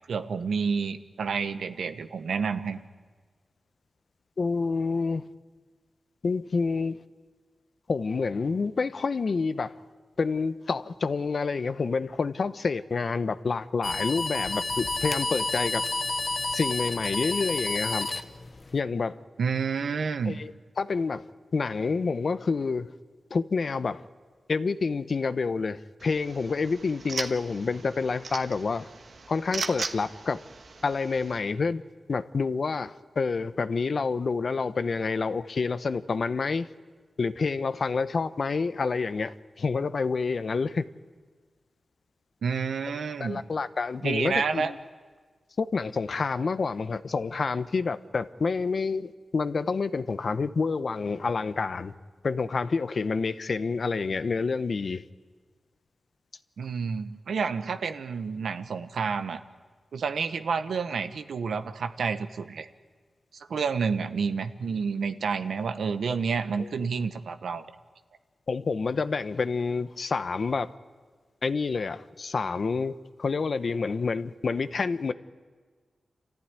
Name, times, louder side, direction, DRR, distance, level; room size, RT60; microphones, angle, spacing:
voice 1, 0.1-2.8 19.4-20.4 42.4-43.4 44.0-44.7 56.6-59.4 59.9-62.7 63.5-67.6, right 5 dB, 85° right, 9 dB, 1.1 m, -29 dB
voice 2, 4.4-5.2 6.2-7.0 7.9-9.7 10.2-15.8 16.5-18.1 18.7-19.2 20.3-20.5 20.8-21.2 21.5-22.9 23.3-24.0 24.5-28.9 29.3-30.4 30.8-31.8 32.1-36.7 37.2-40.9 43.2-44.8 45.6-51.9 52.2-55.0 66.6-66.9 68.5-70.7 71.4-75.1, left 4 dB, 60° left, 12 dB, 0.9 m, -28 dB
sound 1, 13.8-18.8, left 2 dB, 40° left, 1.0 m, -30 dB
sound 2, 26.0-31.4, right 4 dB, 65° right, 1.4 m, -38 dB
28.0 x 14.5 x 9.8 m, 1.5 s
cardioid pair, 70°, 0 cm